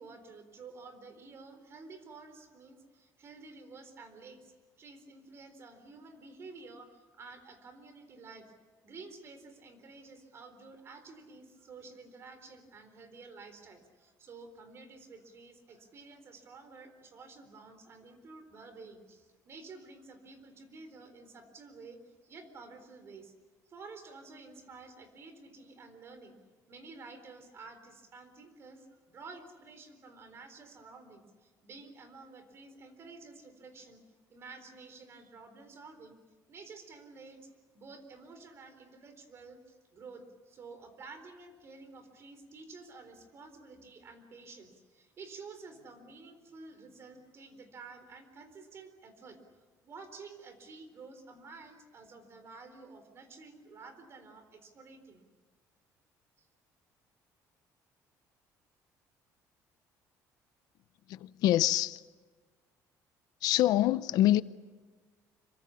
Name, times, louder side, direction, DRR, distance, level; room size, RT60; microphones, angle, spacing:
voice 1, 0.0-8.5 8.8-23.3 23.7-26.4 26.7-34.0 34.3-36.2 36.5-49.4 49.8-55.3 56.4-56.5, right 4 dB, 40° right, 4.1 m, -51 dB
voice 2, 61.1-62.0 63.4-64.4, left 14 dB, 75° left, 0.7 m, -25 dB
26.5 x 24.0 x 7.1 m
cardioid pair, 150°, 7 cm